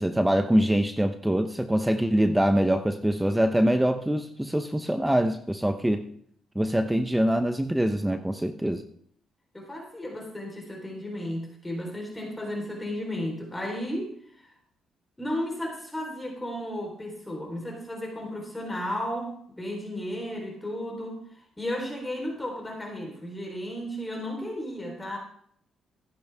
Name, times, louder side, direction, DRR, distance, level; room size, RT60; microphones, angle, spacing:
voice 1, 0.0-6.0 6.5-8.8, equal, 5° right, 8 dB, 0.8 m, -24 dB
voice 2, 9.5-14.5 15.2-25.2, left 1 dB, 15° left, 0 dB, 3.9 m, -34 dB
14.5 x 10.5 x 3.5 m, 0.65 s
cardioid pair, 90°, 0 cm